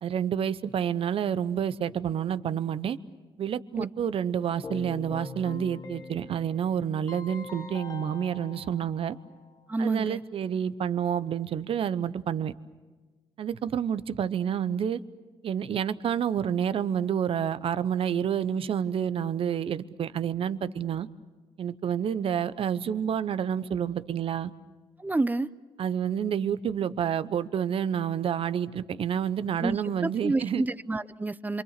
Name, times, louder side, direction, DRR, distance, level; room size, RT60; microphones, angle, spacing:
voice 1, 0.0-3.0 3.4-9.2 9.8-12.5 13.4-15.0 15.4-21.1 21.6-24.5 25.8-30.6, right 8 dB, 55° right, 15 dB, 0.8 m, -29 dB
Keyboard (musical), 4.6-9.6, left 3 dB, 35° left, 1.6 m, -43 dB
voice 2, 9.7-10.2 25.0-25.5 29.6-31.6, right 2 dB, 15° right, 16 dB, 0.7 m, -29 dB
27.5 x 24.0 x 6.7 m, 1.3 s
cardioid pair, 90°, 11 cm